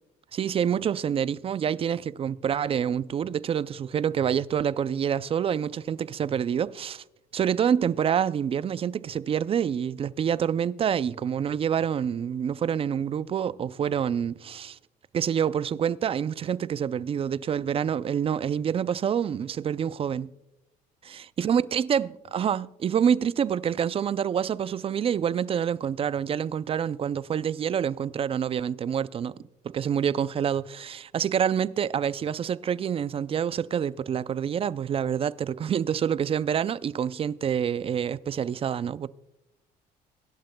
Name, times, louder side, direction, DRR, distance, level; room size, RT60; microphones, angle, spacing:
voice 1, 0.3-7.0 7.3-14.8 15.1-20.3 21.4-29.3 29.6-39.1, right 8 dB, 35° right, 0.4 m, -27 dB
23.5 x 11.5 x 2.2 m
cardioid pair, 110°, 17 cm